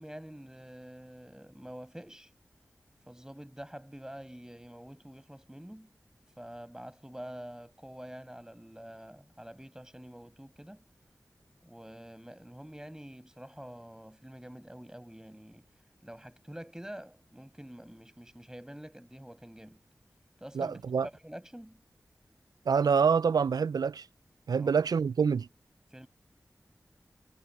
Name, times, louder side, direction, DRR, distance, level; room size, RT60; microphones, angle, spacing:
voice 1, 0.0-2.3 3.1-5.9 6.4-10.8 11.6-15.7 16.0-19.8 20.4-21.8 24.6-24.7 25.9-26.1, equal, 10° right, 7.9 m, -47 dB
voice 2, 20.6-21.1 22.7-24.1 24.5-25.5, right 6 dB, 80° right, 0.3 m, -26 dB
wide cardioid pair, 50°, 7 cm